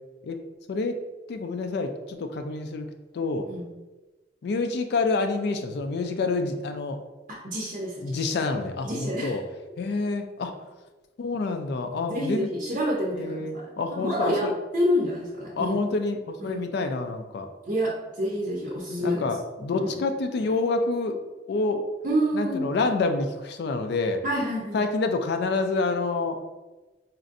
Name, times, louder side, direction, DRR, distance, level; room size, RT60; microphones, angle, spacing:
voice 1, 1.3-2.9 3.1-3.5 4.4-7.0 8.0-9.4 9.8-10.5 11.2-12.5 13.1-14.5 15.5-17.5 19.0-21.2 21.5-21.8 22.3-24.2 24.7-26.4, left 3 dB, 65° left, 6 dB, 0.3 m, -27 dB
voice 2, 7.3-8.2 8.8-9.4 12.1-15.8 16.4-16.6 17.6-19.2 19.8-19.9 22.0-22.7 24.2-24.8, equal, 50° right, -4 dB, 0.5 m, -28 dB
4.1 x 2.5 x 2.5 m, 1.2 s
head